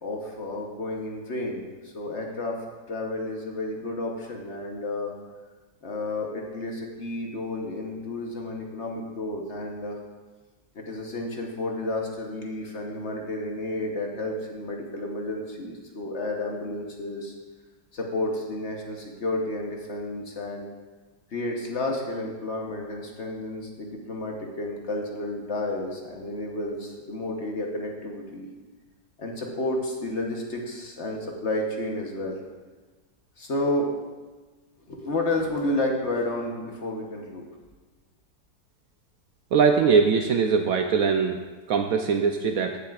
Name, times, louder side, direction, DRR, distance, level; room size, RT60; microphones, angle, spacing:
voice 1, 0.0-5.2 5.8-10.0 10.7-17.3 17.9-20.7 21.3-28.5 29.2-32.4 33.4-34.0 34.9-37.5, left 1 dB, 50° left, 0 dB, 1.1 m, -31 dB
voice 2, 39.5-41.4 41.7-42.8, right 5 dB, 70° right, 5 dB, 0.8 m, -21 dB
15.0 x 7.5 x 2.4 m, 1.3 s
omnidirectional pair, 1.8 m